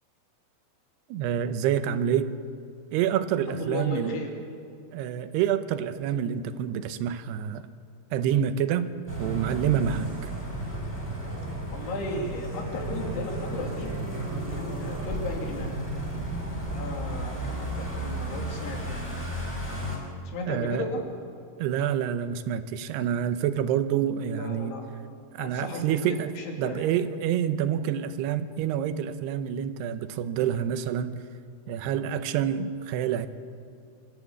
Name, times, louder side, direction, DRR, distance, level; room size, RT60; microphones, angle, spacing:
voice 1, 1.1-2.3 2.9-4.2 4.9-7.6 8.1-8.9 9.2-10.1 20.5-20.9 21.6-24.8 25.3-26.3 26.6-31.2 31.7-33.3, right 9 dB, 85° right, 11 dB, 2.9 m, -27 dB
voice 2, 3.5-4.3 11.7-14.0 14.5-15.7 16.7-19.0 20.3-21.0 24.3-24.8 25.4-26.9, left 2 dB, 75° left, 1 dB, 4.6 m, -35 dB
sound 1, 9.1-20.0, right 1 dB, 5° right, 5.0 m, -33 dB
25.0 x 13.0 x 8.5 m, 2.4 s
omnidirectional pair, 4.7 m